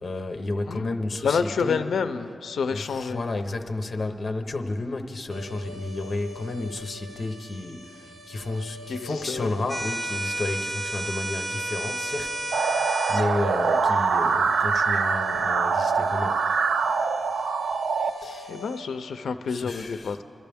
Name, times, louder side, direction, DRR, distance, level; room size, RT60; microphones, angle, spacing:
voice 1, 0.0-1.8 2.7-16.4 18.1-18.6 19.5-20.2, left 2 dB, 35° left, 5 dB, 0.8 m, -32 dB
voice 2, 1.2-3.2 8.9-9.5 18.5-20.2, left 5 dB, 85° left, 9 dB, 0.4 m, -28 dB
sound 1, 5.3-18.8, left 2 dB, 60° right, 1.6 m, -45 dB
Bagpipe Chanter - Low A, 9.7-13.3, right 1 dB, 20° right, 0.5 m, -31 dB
sound 2, 12.5-18.1, right 5 dB, 90° right, 0.5 m, -24 dB
24.0 x 12.5 x 3.5 m, 2.7 s
wide cardioid pair, 170°, 0 cm